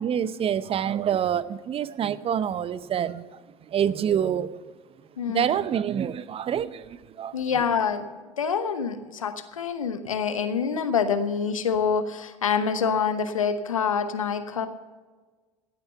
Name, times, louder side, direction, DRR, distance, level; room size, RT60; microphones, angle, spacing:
voice 1, 0.0-3.3 3.7-4.5 5.3-7.3, right 9 dB, 35° right, 17 dB, 0.7 m, -26 dB
voice 2, 5.2-5.5 7.3-8.1 8.4-14.7, left 6 dB, 85° left, 10 dB, 1.0 m, -26 dB
16.5 x 9.1 x 5.7 m, 1.4 s
hypercardioid pair, 70°, 17 cm